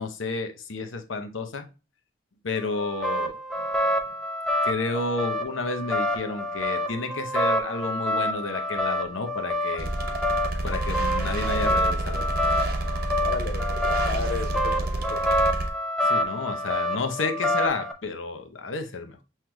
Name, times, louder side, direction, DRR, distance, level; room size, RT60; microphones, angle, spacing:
voice 1, 0.0-1.7 2.4-4.0 4.6-9.9 10.6-12.3 16.0-19.2, left 3 dB, 90° left, 0.8 m, -31 dB
sound 1, 2.6-17.9, equal, ahead, 0.5 m, -27 dB
sound 2, 9.8-15.7, right 1 dB, 50° right, 0.8 m, -29 dB
voice 2, 13.2-15.2, left 4 dB, 55° left, 0.5 m, -33 dB
5.7 x 3.2 x 2.2 m
head